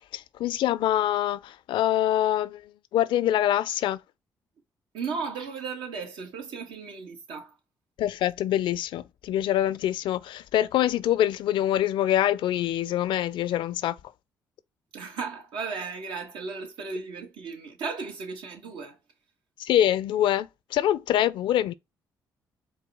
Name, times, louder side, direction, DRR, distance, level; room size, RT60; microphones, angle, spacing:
voice 1, 0.1-2.6 2.9-4.0 8.0-14.0 19.6-21.7, left 12 dB, 80° left, 0.4 m, -25 dB
voice 2, 4.9-7.6 14.9-19.0, right 5 dB, 80° right, 1.4 m, -35 dB
4.7 x 2.3 x 4.6 m
supercardioid pair, 70°, 8 cm